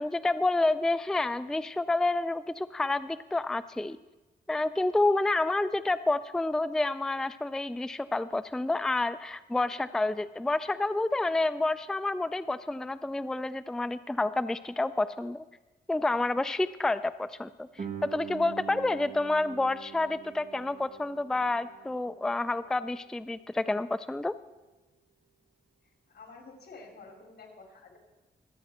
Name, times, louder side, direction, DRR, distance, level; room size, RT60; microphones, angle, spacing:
voice 1, 0.0-4.0 4.5-15.4 15.9-24.3, left 2 dB, 5° left, 13 dB, 0.3 m, -29 dB
Guitar, 17.8-23.1, right 8 dB, 45° right, 1.8 m, -44 dB
voice 2, 26.1-28.0, left 3 dB, 80° left, 1 dB, 3.2 m, -49 dB
24.5 x 8.7 x 4.3 m, 1.1 s
wide cardioid pair, 105°, 17 cm